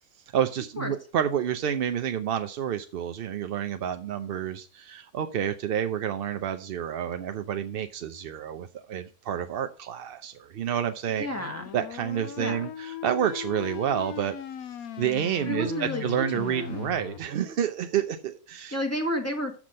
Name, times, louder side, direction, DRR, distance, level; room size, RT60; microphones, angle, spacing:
voice 1, 0.3-11.3 11.7-14.3 15.0-18.8, right 9 dB, 60° right, 0.6 m, -29 dB
sound 1, 11.2-17.2, left 9 dB, 85° left, 1.2 m, -38 dB
voice 2, 11.2-11.6 12.4-12.6 15.5-16.9 18.7-19.6, left 1 dB, 10° left, 1.6 m, -31 dB
7.1 x 6.0 x 6.3 m
omnidirectional pair, 1.5 m